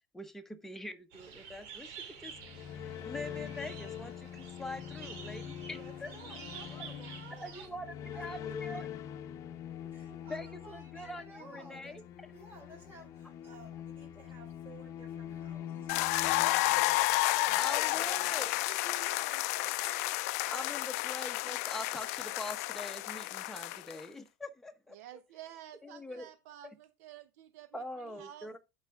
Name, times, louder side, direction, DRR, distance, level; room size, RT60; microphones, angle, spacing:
voice 1, 0.1-2.3 2.7-6.1 7.3-8.9 10.3-12.0 17.6-18.5 20.5-25.0 25.8-26.3 26.6-26.7 27.7-28.6, left 1 dB, 5° left, 1.0 m, -43 dB
sound 1, 1.1-7.7, right 7 dB, 65° right, 2.4 m, -50 dB
sound 2, 2.2-17.4, left 9 dB, 40° left, 0.7 m, -44 dB
voice 2, 5.7-7.7 8.1-8.8 9.9-12.0 12.3-20.2, right 3 dB, 25° right, 4.9 m, -54 dB
sound 3, 15.9-24.0, left 21 dB, 75° left, 0.4 m, -31 dB
voice 3, 24.9-28.5, right 12 dB, 80° right, 0.7 m, -51 dB
11.0 x 4.8 x 3.5 m
supercardioid pair, 140°, 8 cm